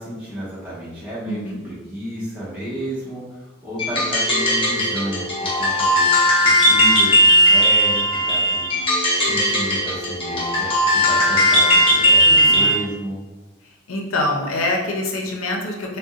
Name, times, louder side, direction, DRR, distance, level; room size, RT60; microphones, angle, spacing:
voice 1, 0.0-8.7 9.2-13.2, equal, 5° right, -11 dB, 1.2 m, -32 dB
voice 2, 1.3-1.6 12.3-12.7 13.9-16.0, left 2 dB, 85° left, 0 dB, 0.6 m, -25 dB
sound 1, 3.8-12.8, equal, 25° left, 0.8 m, -17 dB
3.8 x 2.2 x 2.4 m, 1.1 s
head